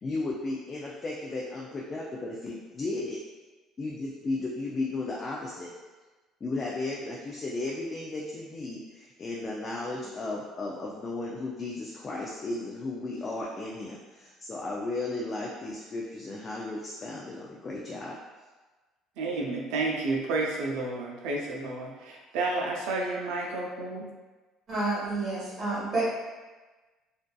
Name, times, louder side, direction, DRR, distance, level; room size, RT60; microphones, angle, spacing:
voice 1, 0.0-3.2 3.8-5.7 6.4-18.2, left 2 dB, 30° left, -3 dB, 0.3 m, -35 dB
voice 2, 19.2-24.1, right 3 dB, 85° right, -1 dB, 0.5 m, -31 dB
voice 3, 24.7-26.1, right 2 dB, 40° right, -8 dB, 1.2 m, -29 dB
2.5 x 2.3 x 2.2 m, 1.3 s
cardioid pair, 125°, 0 cm